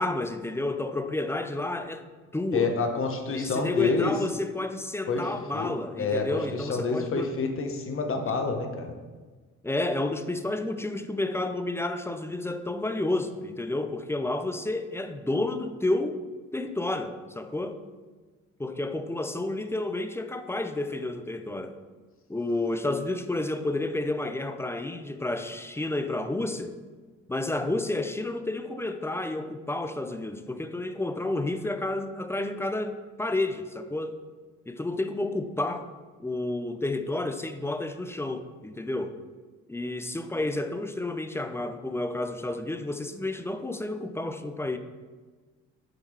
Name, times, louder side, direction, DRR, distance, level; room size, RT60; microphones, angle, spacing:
voice 1, 0.0-2.0 2.3-2.7 3.3-7.3 9.6-16.2 16.5-17.8 18.6-21.8 22.3-26.7 27.3-34.2 34.7-35.9 36.2-39.2 39.7-44.8, left 2 dB, 10° left, 9 dB, 0.4 m, -30 dB
voice 2, 2.5-4.1 5.1-5.7 6.0-8.9, left 4 dB, 45° left, 4 dB, 1.0 m, -28 dB
7.9 x 3.7 x 4.7 m, 1.4 s
cardioid pair, 90°, 30 cm